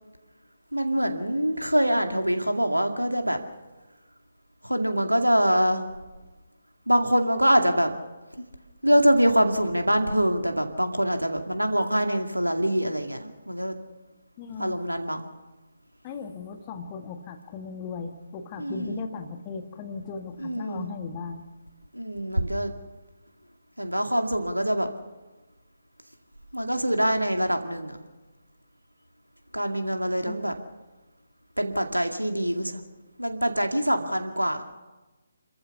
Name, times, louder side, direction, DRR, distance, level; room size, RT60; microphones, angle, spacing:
voice 1, 0.7-3.4 4.6-5.8 6.9-7.9 8.8-13.8 14.6-15.3 18.6-19.0 20.4-20.9 21.9-22.7 23.8-24.9 26.5-28.0 29.5-30.5 31.6-32.8 33.2-34.6, equal, 85° right, 5 dB, 2.2 m, -24 dB
voice 2, 14.4-14.8 16.0-21.5 30.3-30.4, left 5 dB, 20° left, 6 dB, 1.5 m, -37 dB
28.0 x 14.0 x 7.0 m, 1.2 s
figure-of-eight pair, 145°, 0 cm